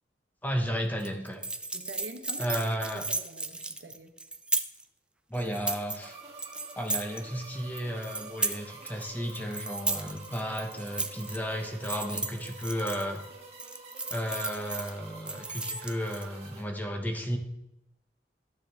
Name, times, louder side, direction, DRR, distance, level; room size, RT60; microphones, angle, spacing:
voice 1, 0.4-1.4 2.4-3.0 5.3-6.2 6.8-13.2 14.1-17.4, equal, 10° left, 3 dB, 1.1 m, -33 dB
sound 1, 1.0-4.8 5.3-6.1 6.4-7.2 7.6-9.0 9.3-11.4 11.8-13.2 13.6-14.9 15.3-16.3, right 2 dB, 5° right, 0.4 m, -34 dB
voice 2, 1.7-2.6 2.9-4.1, right 2 dB, 85° right, 6 dB, 1.0 m, -45 dB
sound 2, 6.0-16.6, right 3 dB, 40° right, 1.4 m, -48 dB
12.0 x 7.2 x 3.4 m, 0.89 s
head